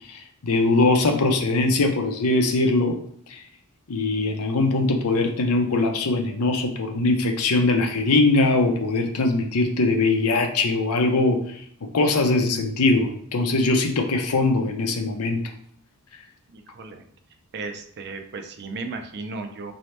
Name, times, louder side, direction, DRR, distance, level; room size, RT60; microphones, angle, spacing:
voice 1, 0.1-3.0 3.3-3.4 3.9-11.6 11.9-15.4, left 2 dB, 80° left, 4 dB, 0.6 m, -21 dB
voice 2, 16.5-17.0 17.5-19.7, right 3 dB, 50° right, 7 dB, 0.5 m, -35 dB
4.2 x 2.7 x 3.2 m, 0.63 s
head